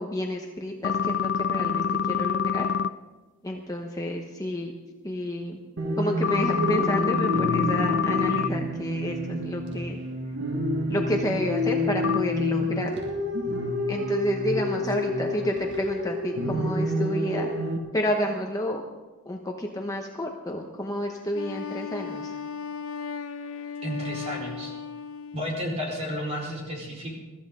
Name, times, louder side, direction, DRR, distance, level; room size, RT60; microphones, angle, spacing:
voice 1, 0.0-2.7 3.4-4.7 5.0-5.6 6.0-10.0 10.9-13.0 13.9-17.5 17.9-18.8 19.2-22.4, left 1 dB, 15° left, 1 dB, 1.0 m, -30 dB
sound 1, 0.8-2.9 6.2-8.5 12.0-12.2, left 7 dB, 50° left, 0.4 m, -26 dB
sound 2, 5.8-17.8, left 1 dB, 55° right, 1.8 m, -28 dB
Wind instrument woodwind instrument, 21.3-25.7, left 6 dB, 75° left, 0.8 m, -36 dB
voice 2, 23.8-24.7 25.3-27.2, equal, 30° right, -2 dB, 4.6 m, -32 dB
23.0 x 14.0 x 3.8 m, 1.2 s
head